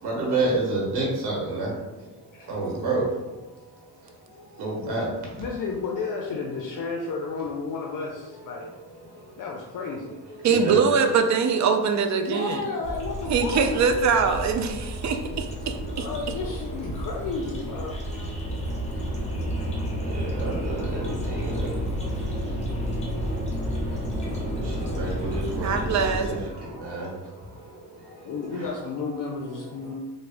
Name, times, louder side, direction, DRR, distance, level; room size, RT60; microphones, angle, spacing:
voice 1, 0.0-5.9 8.2-9.5 10.0-10.8 14.6-15.1 15.6-16.2 16.9-17.0 17.8-29.0 29.5-29.9, right 2 dB, 85° right, -3 dB, 1.0 m, -33 dB
voice 2, 5.4-8.7 9.4-10.1 12.2-13.7 15.9-18.0 28.2-29.9, left 4 dB, 55° left, -1 dB, 0.5 m, -32 dB
voice 3, 10.4-12.7 13.3-16.1 25.6-26.3, right 5 dB, 45° right, 6 dB, 0.5 m, -23 dB
sound 1, 12.8-26.3, equal, 15° left, 0.9 m, -31 dB
3.5 x 2.1 x 3.3 m, 1.1 s
cardioid pair, 95°, 38 cm